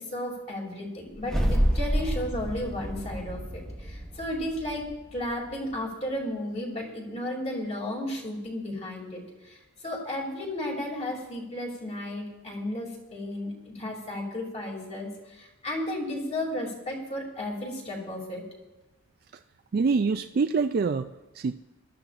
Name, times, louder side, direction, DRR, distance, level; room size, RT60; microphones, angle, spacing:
voice 1, 0.0-4.9 5.1-9.6 9.8-18.4, left 1 dB, 30° left, -1 dB, 2.8 m, -34 dB
sound 1, 1.2-5.5, equal, ahead, 1.2 m, -29 dB
voice 2, 19.7-21.5, right 4 dB, 45° right, 7 dB, 0.3 m, -26 dB
21.5 x 13.0 x 2.5 m, 1.1 s
head